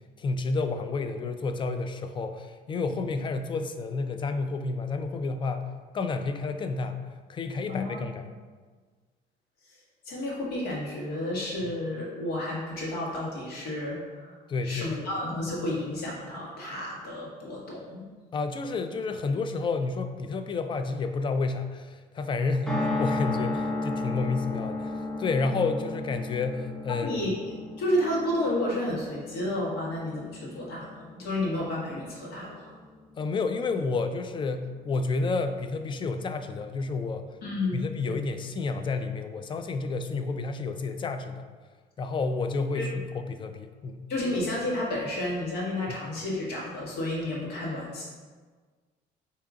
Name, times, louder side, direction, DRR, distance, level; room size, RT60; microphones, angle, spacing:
voice 1, 0.2-5.7 5.9-7.0 7.3-8.2 11.6-11.7 14.5-15.1 18.3-24.9 25.2-27.3 33.2-37.3 37.7-41.4 42.0-44.0, left 3 dB, 30° left, 8 dB, 0.3 m, -30 dB
voice 2, 7.7-8.0 9.7-9.8 10.0-14.4 14.6-18.1 26.9-32.8 37.4-37.8 42.7-42.9 44.1-48.0, left 1 dB, 75° left, -4 dB, 1.5 m, -31 dB
sound 1, 22.7-34.9 35.2-35.3 35.5-35.6, left 2 dB, 5° left, 0.7 m, -35 dB
4.7 x 2.8 x 3.6 m, 1.5 s
cardioid pair, 110°, 17 cm